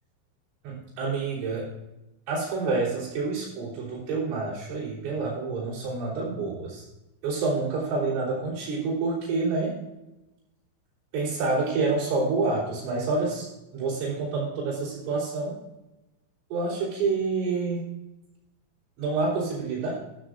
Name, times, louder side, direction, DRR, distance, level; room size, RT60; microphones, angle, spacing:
voice 1, 0.6-1.7 2.3-6.8 7.2-9.8 11.1-13.5 13.7-15.6 16.5-17.8 19.0-20.0, right 3 dB, 80° right, -7 dB, 6.1 m, -28 dB
14.0 x 13.5 x 2.5 m, 0.96 s
omnidirectional pair, 5.5 m